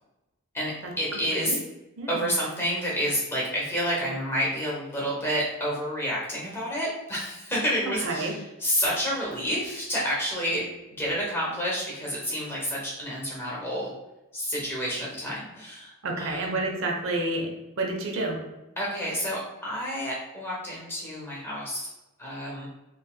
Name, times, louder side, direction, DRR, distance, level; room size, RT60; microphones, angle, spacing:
voice 1, 0.5-1.6 2.1-10.6 11.0-13.9 14.3-16.7 18.8-21.9 22.2-22.7, equal, 10° left, -5 dB, 0.9 m, -29 dB
voice 2, 2.0-2.3 8.0-8.3 16.0-17.5 17.8-18.4, right 2 dB, 60° right, 1 dB, 0.5 m, -29 dB
3.1 x 2.7 x 2.2 m, 0.97 s
head